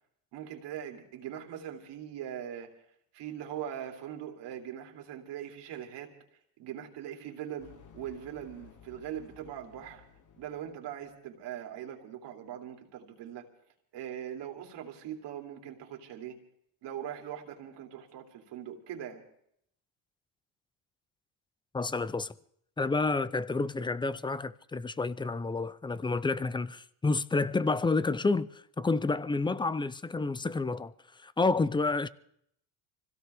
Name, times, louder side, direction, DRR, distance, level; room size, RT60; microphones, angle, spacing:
voice 1, 0.3-2.7 3.1-6.1 6.6-10.0 10.4-13.5 13.9-16.4 16.8-19.2, right 10 dB, 65° right, 3.0 m, -41 dB
sound 1, 7.6-11.2, left 8 dB, 40° left, 1.8 m, -56 dB
voice 2, 21.7-22.3 22.8-30.9 31.2-32.1, left 3 dB, 10° left, 0.5 m, -29 dB
25.0 x 16.5 x 3.5 m
cardioid pair, 110°, 45 cm